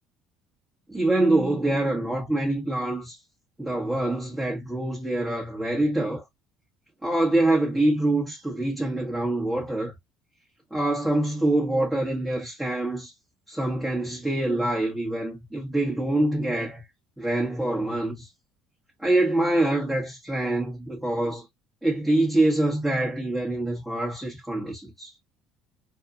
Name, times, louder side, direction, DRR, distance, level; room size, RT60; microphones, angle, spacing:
voice 1, 0.9-3.2 3.6-6.2 7.0-9.9 10.7-13.1 13.5-16.8 17.2-18.3 19.0-21.5 21.8-25.1, right 1 dB, 5° right, 1.1 m, -25 dB
2.7 x 2.4 x 2.5 m
hypercardioid pair, 75°, 0 cm